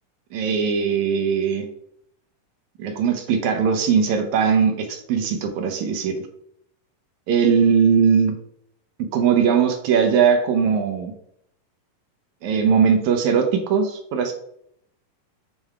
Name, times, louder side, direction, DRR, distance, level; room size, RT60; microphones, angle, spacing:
voice 1, 0.3-1.7 2.8-6.3 7.3-8.4 9.0-11.1 12.4-14.3, right 6 dB, 70° right, 5 dB, 1.9 m, -20 dB
7.3 x 3.4 x 4.8 m, 0.70 s
omnidirectional pair, 3.9 m